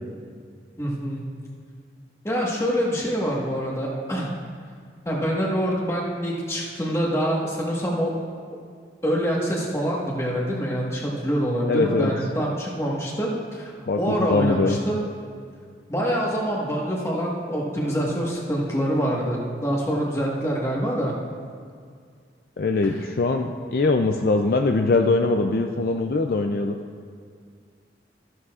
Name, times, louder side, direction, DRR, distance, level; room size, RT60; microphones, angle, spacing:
voice 1, 0.8-1.2 2.2-4.4 5.0-8.1 9.0-13.7 14.0-15.0 15.9-21.1 22.8-23.0, equal, 15° left, -3 dB, 1.4 m, -25 dB
voice 2, 11.7-12.1 13.9-14.8 22.6-26.8, left 3 dB, 55° left, 4 dB, 0.4 m, -22 dB
14.0 x 11.0 x 2.4 m, 2.1 s
head